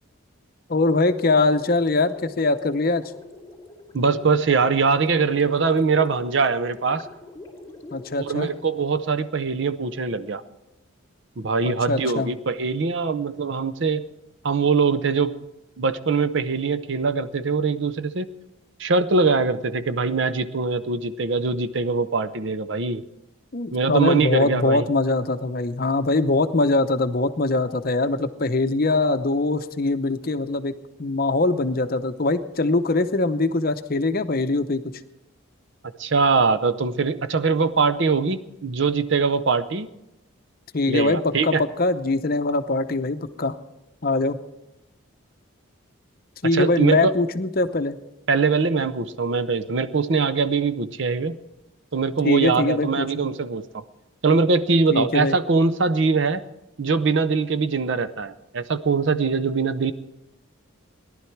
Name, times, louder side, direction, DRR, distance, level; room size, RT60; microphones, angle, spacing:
voice 1, 0.7-3.0 7.9-8.5 11.7-12.3 23.5-30.7 31.0-34.8 40.7-43.6 44.0-44.4 46.4-48.0 52.2-53.1 54.9-55.4, left 2 dB, 45° left, 10 dB, 0.7 m, -22 dB
Gurgling, 0.8-9.2, left 2 dB, 15° left, 2.9 m, -45 dB
voice 2, 3.9-7.0 8.2-10.4 11.4-14.1 14.4-15.4 15.8-18.3 18.8-23.0 23.7-24.9 36.0-39.9 40.9-41.6 46.5-47.1 48.3-51.4 51.9-53.6 54.2-56.4 56.8-59.9, right 4 dB, 55° right, 12 dB, 0.6 m, -22 dB
18.0 x 11.0 x 4.6 m, 0.92 s
head